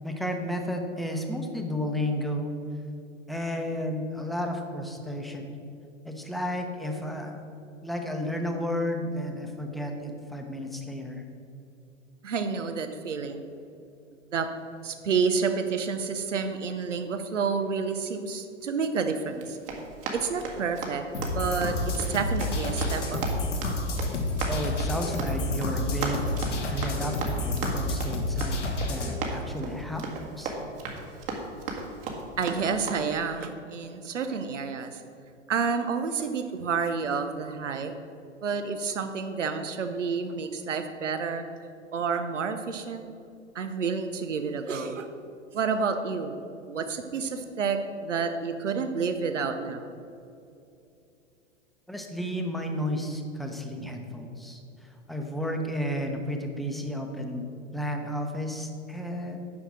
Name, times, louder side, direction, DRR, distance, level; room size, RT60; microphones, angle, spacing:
voice 1, 0.0-2.5 3.3-5.5 6.0-7.4 7.8-11.2 24.5-28.6 28.9-30.1 30.4-30.5 51.9-59.4, equal, ahead, 3 dB, 0.9 m, -32 dB
voice 2, 12.2-13.4 14.3-14.5 14.8-19.6 20.1-23.3 32.4-35.0 35.5-37.9 38.4-41.4 41.9-43.0 43.5-45.1 45.5-46.3 46.7-49.9, right 5 dB, 85° right, 8 dB, 0.8 m, -29 dB
Run, 19.3-32.9, right 3 dB, 50° right, 1.8 m, -37 dB
sound 1, 21.1-29.1, left 1 dB, 80° left, 1.5 m, -29 dB
9.6 x 5.7 x 6.2 m, 2.6 s
figure-of-eight pair, 100°, 36 cm